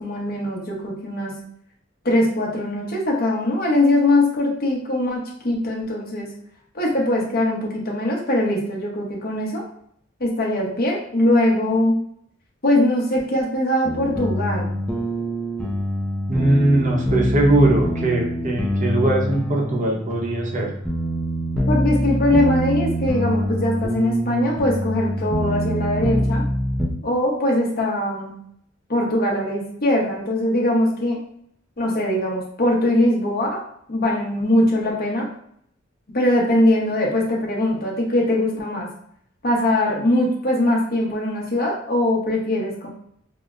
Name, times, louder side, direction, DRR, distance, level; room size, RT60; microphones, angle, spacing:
voice 1, 0.0-1.3 2.0-6.3 6.7-9.7 10.2-11.9 12.6-14.8 21.7-26.4 27.0-28.3 28.9-31.2 31.8-35.3 36.1-38.9 39.4-42.9, left 1 dB, 50° left, -3 dB, 0.9 m, -21 dB
sound 1, 13.8-26.9, equal, 5° left, 0.4 m, -25 dB
voice 2, 16.3-20.7, right 1 dB, 40° right, 0 dB, 0.7 m, -20 dB
4.8 x 2.0 x 2.4 m, 0.67 s
head